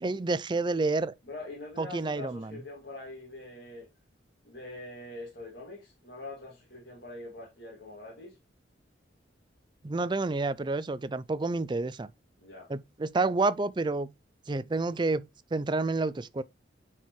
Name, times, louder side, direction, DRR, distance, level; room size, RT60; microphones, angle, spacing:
voice 1, 0.0-1.1 1.8-2.5 9.8-12.1 12.7-14.1 14.5-16.4, right 3 dB, 25° right, 0.4 m, -29 dB
voice 2, 1.2-3.9 4.4-8.4 12.4-12.7, left 2 dB, 55° left, 2.4 m, -44 dB
9.2 x 4.6 x 3.1 m
head